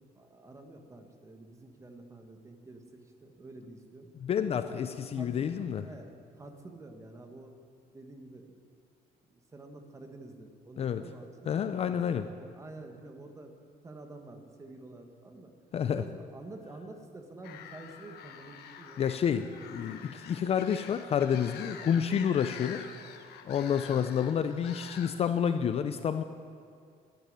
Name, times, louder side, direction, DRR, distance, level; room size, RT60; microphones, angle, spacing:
voice 1, 0.1-4.1 4.5-7.5 7.9-8.5 9.3-13.5 13.8-15.5 15.9-19.0 23.9-24.2, right 2 dB, 20° right, 5 dB, 1.5 m, -49 dB
voice 2, 4.2-5.9 10.8-11.0 11.5-12.3 15.7-16.0 19.0-22.9 23.4-26.2, left 8 dB, 40° left, 10 dB, 0.5 m, -29 dB
sound 1, 17.4-25.1, left 8 dB, 80° left, 1.1 m, -46 dB
12.0 x 11.5 x 9.5 m, 2.3 s
cardioid pair, 160°, 16 cm